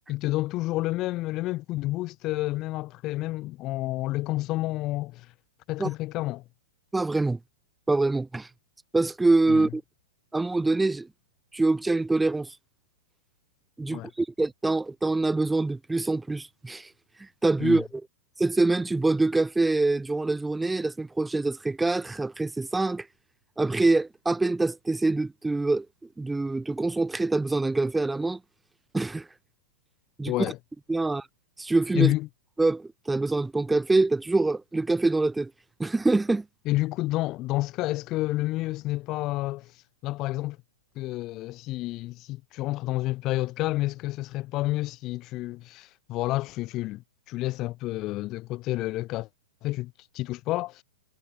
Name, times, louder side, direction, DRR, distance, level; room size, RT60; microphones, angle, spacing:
voice 1, 0.1-5.3 5.7-6.4 9.5-9.7 13.9-14.1 17.6-17.8 30.3-30.6 31.9-32.3 36.7-39.7 40.0-40.6 41.0-47.0 47.3-49.3 49.6-50.8, left 18 dB, 35° left, 3.9 m, -29 dB
voice 2, 6.9-7.4 7.9-8.5 8.9-9.8 10.3-11.1 11.5-12.6 13.8-16.9 17.4-17.9 18.4-23.1 23.6-25.9 26.2-28.4 28.9-29.3 30.2-30.5 30.9-31.3 31.6-32.1 32.6-35.5 35.8-36.4, right 2 dB, 5° right, 3.8 m, -25 dB
figure-of-eight pair, 110°, 0 cm